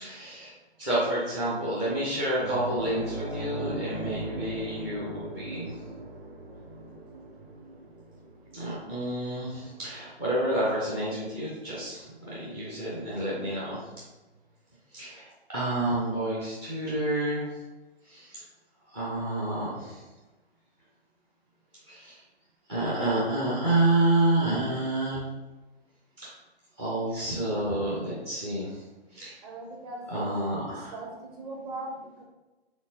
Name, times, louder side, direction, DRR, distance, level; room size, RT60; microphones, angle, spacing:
voice 1, 0.0-0.5 0.8-5.7 8.5-13.8 14.9-15.2 15.5-17.4 18.1-18.4 18.9-20.0 21.9-22.1 22.7-25.2 26.2-26.3 26.8-28.7 29.1-29.3 30.1-30.9, right 1 dB, 10° right, -9 dB, 0.4 m, -29 dB
sound 1, 2.4-11.3 11.7-11.9 13.9-14.0, right 2 dB, 60° right, 0.9 m, -39 dB
voice 2, 29.4-30.3 30.7-32.2, right 2 dB, 40° right, 0 dB, 1.0 m, -39 dB
4.4 x 3.5 x 2.7 m, 1.1 s
figure-of-eight pair, 125°, 32 cm